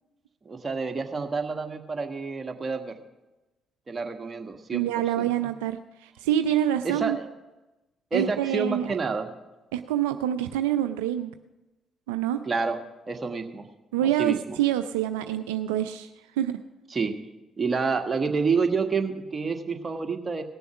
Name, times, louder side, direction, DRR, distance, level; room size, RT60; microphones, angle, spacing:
voice 1, 0.4-3.0 3.9-4.8 5.2-5.3 6.8-7.3 8.1-9.3 12.4-12.8 13.1-13.7 14.0-14.6 16.9-17.2 17.6-20.4, right 4 dB, 35° right, 5 dB, 1.4 m, -28 dB
voice 2, 4.7-7.2 8.1-9.0 9.7-11.3 12.1-12.4 13.9-16.1 16.4-16.5, right 11 dB, 85° right, 9 dB, 0.3 m, -26 dB
18.0 x 6.9 x 6.1 m, 1.1 s
hypercardioid pair, 50°, 0 cm